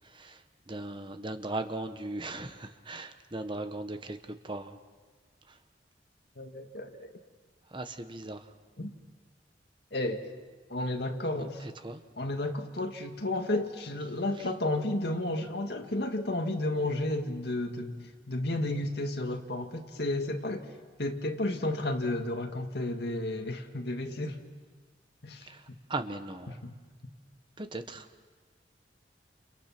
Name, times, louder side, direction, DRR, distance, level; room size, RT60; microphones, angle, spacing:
voice 1, 0.7-4.8 7.7-8.4 11.4-11.5 11.8-12.0 25.5-25.6 25.9-26.6 27.6-28.1, right 2 dB, 25° right, 8 dB, 1.1 m, -38 dB
voice 2, 6.4-7.1 8.8-8.9 9.9-10.2 10.7-11.6 12.2-20.7 21.0-24.4 25.2-25.5 26.5-26.7, left 1 dB, 65° left, 3 dB, 2.2 m, -32 dB
29.5 x 29.0 x 6.0 m, 1.5 s
head